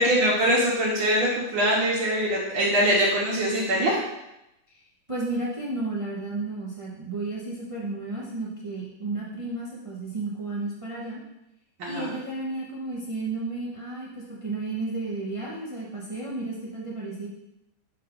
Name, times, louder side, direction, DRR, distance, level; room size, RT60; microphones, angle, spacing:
voice 1, 0.0-4.0 11.8-12.1, equal, 90° right, -7 dB, 2.0 m, -23 dB
voice 2, 5.1-11.2 11.9-17.3, right 2 dB, 45° right, -5 dB, 0.4 m, -32 dB
6.7 x 3.8 x 3.8 m, 0.88 s
omnidirectional pair, 2.1 m